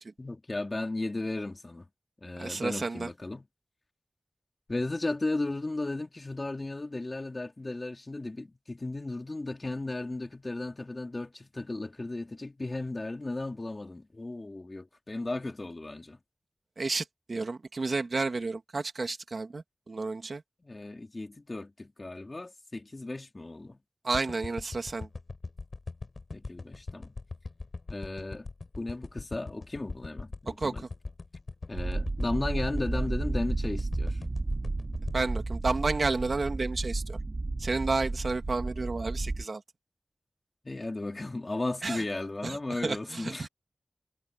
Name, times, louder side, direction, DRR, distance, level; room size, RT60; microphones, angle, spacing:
voice 1, 0.2-1.9 2.2-3.5 4.7-16.2 20.6-23.8 26.3-27.1 27.9-28.5 28.8-30.8 31.7-34.2 40.6-43.5, left 2 dB, 40° left, 3.7 m, -35 dB
voice 2, 2.4-3.1 16.8-20.4 24.0-25.1 30.5-30.7 35.1-37.2 37.6-39.6 41.8-42.0 42.4-43.5, right 3 dB, 65° right, 2.7 m, -31 dB
sound 1, 24.1-36.5 36.9-37.0, left 3 dB, 60° left, 5.8 m, -41 dB
sound 2, 31.7-39.4, right 2 dB, 45° right, 5.9 m, -32 dB
wide cardioid pair, 75°, 0 cm